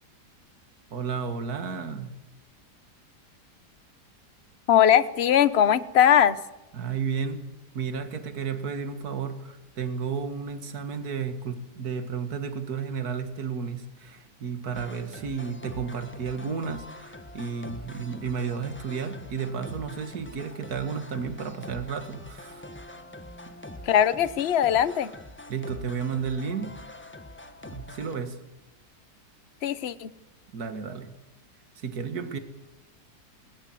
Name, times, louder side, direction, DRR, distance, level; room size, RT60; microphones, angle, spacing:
voice 1, 0.9-2.1 6.7-7.4 7.7-22.7 25.5-26.8 27.7-28.4 30.5-31.1 31.8-32.4, right 6 dB, 60° right, 10 dB, 2.2 m, -32 dB
voice 2, 4.7-6.4 23.9-25.1 29.6-30.1, left 10 dB, 45° left, 15 dB, 1.0 m, -20 dB
sound 1, 14.7-28.2, left 1 dB, 10° left, 1.1 m, -44 dB
20.5 x 20.5 x 7.8 m, 0.94 s
omnidirectional pair, 1.8 m